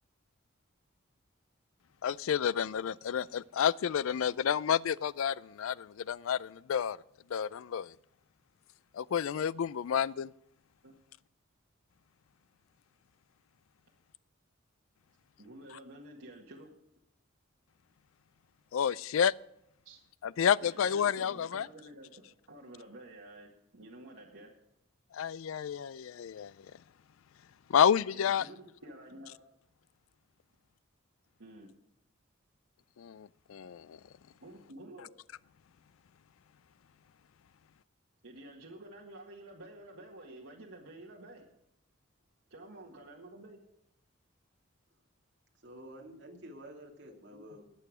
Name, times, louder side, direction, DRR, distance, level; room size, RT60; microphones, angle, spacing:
voice 1, 2.0-7.0 7.3-7.9 8.9-10.3 18.7-19.3 20.2-21.7 25.1-26.5 27.7-28.4 33.0-34.0, left 8 dB, 85° left, 0.4 m, -30 dB
voice 2, 15.4-16.7 19.8-20.0 20.6-22.1 22.5-24.5 28.1-29.4 31.4-31.7 34.4-35.1 38.2-41.5 42.5-43.6, right 1 dB, 85° right, 1.8 m, -50 dB
voice 3, 45.6-47.7, equal, 60° right, 2.5 m, -49 dB
19.5 x 6.8 x 4.9 m
head